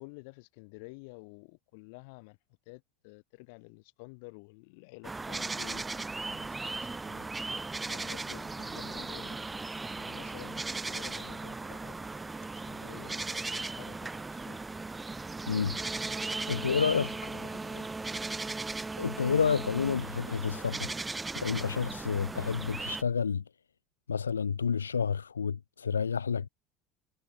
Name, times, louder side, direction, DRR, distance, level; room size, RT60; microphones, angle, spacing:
voice 1, 0.0-2.4 2.6-5.8 6.2-7.3 7.9-9.4 10.0-11.9 12.6-14.6 16.5-17.9, left 31 dB, 65° left, 5.0 m, -51 dB
sound 1, 5.0-23.0, right 3 dB, 15° right, 3.2 m, -37 dB
voice 2, 15.5-15.8 16.5-17.1 19.0-21.0 21.3-23.4 24.1-26.5, left 6 dB, 85° left, 1.1 m, -29 dB
figure-of-eight pair, 65°, 0 cm